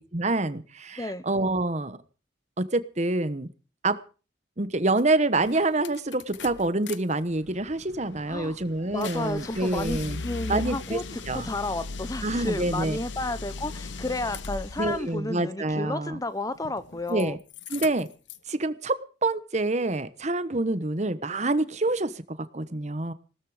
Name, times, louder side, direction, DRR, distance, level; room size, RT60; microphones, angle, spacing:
voice 1, 0.0-2.0 2.6-3.5 3.8-4.0 4.6-10.2 10.5-11.0 11.3-11.5 12.2-13.0 14.8-16.2 17.1-17.4 17.7-18.1 18.5-23.1, right 2 dB, 35° right, 1.1 m, -27 dB
sound 1, 5.0-5.1 5.4-7.0 7.3-15.1 16.5-17.2 17.5-18.5, left 4 dB, 70° left, 0.9 m, -38 dB
voice 2, 8.9-17.4, left 2 dB, 20° left, 0.7 m, -32 dB
18.0 x 13.5 x 5.0 m
head